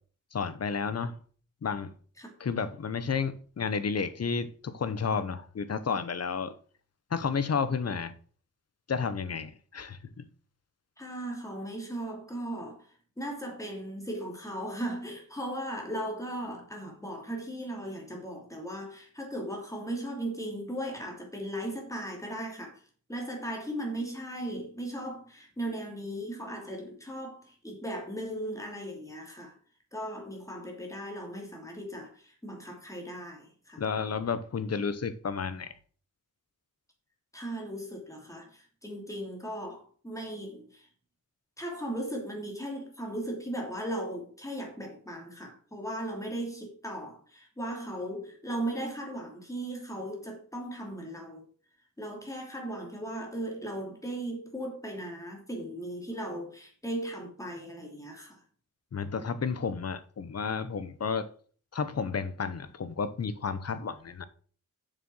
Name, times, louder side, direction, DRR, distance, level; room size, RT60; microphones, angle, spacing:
voice 1, 0.3-1.2 1.6-1.9 2.4-6.5 7.1-8.1 8.9-10.2 33.8-35.7 58.9-61.3 61.7-64.3, left 5 dB, 50° left, 0.9 m, -31 dB
voice 2, 11.0-12.9 13.2-22.8 23.1-29.5 29.9-33.8 37.3-40.9 41.6-51.4 52.0-58.4 59.1-59.3, right 1 dB, 10° left, 3.0 m, -37 dB
7.5 x 6.8 x 6.2 m
wide cardioid pair, 165°, 32 cm